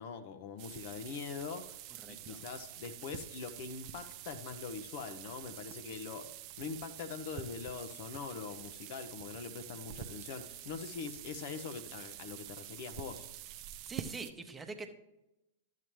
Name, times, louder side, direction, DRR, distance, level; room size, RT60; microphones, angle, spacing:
voice 1, 0.0-1.8 2.1-6.3 6.6-13.3, left 5 dB, 50° left, 8 dB, 0.8 m, -43 dB
sound 1, 0.6-14.3, right 12 dB, 45° right, 0.6 m, -47 dB
voice 2, 2.0-2.4 13.9-14.9, right 4 dB, 15° right, 6 dB, 1.0 m, -44 dB
12.0 x 7.5 x 3.1 m, 0.93 s
figure-of-eight pair, 95°, 0 cm